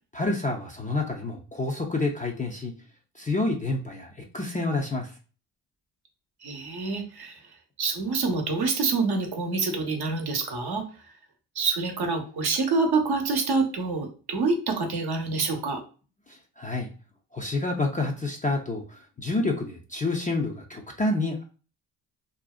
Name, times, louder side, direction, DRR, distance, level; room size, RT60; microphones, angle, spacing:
voice 1, 0.1-2.7 3.2-5.1 16.6-16.9 17.3-21.4, left 2 dB, 20° left, 0 dB, 0.3 m, -28 dB
voice 2, 6.4-7.4 7.8-10.8 11.6-15.8, right 4 dB, 55° right, 4 dB, 0.7 m, -26 dB
2.6 x 2.0 x 2.3 m, 0.36 s
cardioid pair, 65°, 44 cm